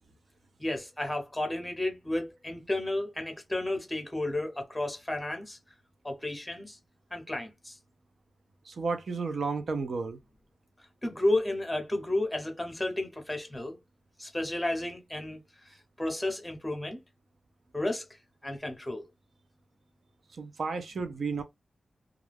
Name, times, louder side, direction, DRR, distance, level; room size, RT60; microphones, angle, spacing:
voice 1, 0.6-5.6 6.0-6.8 7.1-7.8 11.0-13.8 14.2-15.4 16.0-17.0 17.7-18.1 18.4-19.0, left 1 dB, 10° left, 0.9 m, -32 dB
voice 2, 8.7-10.2 20.4-21.4, right 4 dB, 65° right, 0.4 m, -32 dB
2.3 x 2.2 x 3.3 m
wide cardioid pair, 105°, 0 cm